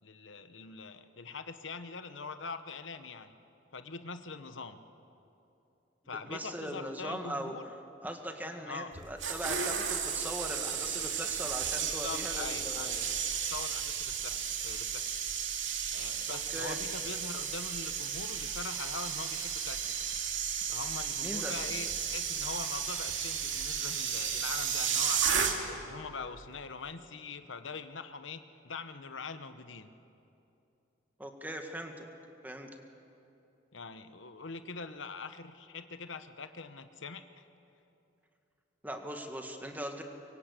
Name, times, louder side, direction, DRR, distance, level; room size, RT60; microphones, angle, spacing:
voice 1, 0.0-3.3 3.7-4.8 6.1-7.7 8.7-8.9 11.8-13.1 13.5-15.1 15.9-20.1 20.7-25.2 25.5-29.9 33.7-37.4, left 4 dB, 85° left, 10 dB, 1.1 m, -43 dB
voice 2, 6.3-7.5 8.0-13.0 16.3-16.8 21.2-21.5 31.2-32.1 32.4-32.7 38.8-40.0, equal, 10° right, 4 dB, 1.9 m, -40 dB
sound 1, 8.9-25.9 26.2-26.4, right 7 dB, 90° right, 2.5 m, -34 dB
25.5 x 23.0 x 8.4 m, 2.8 s
head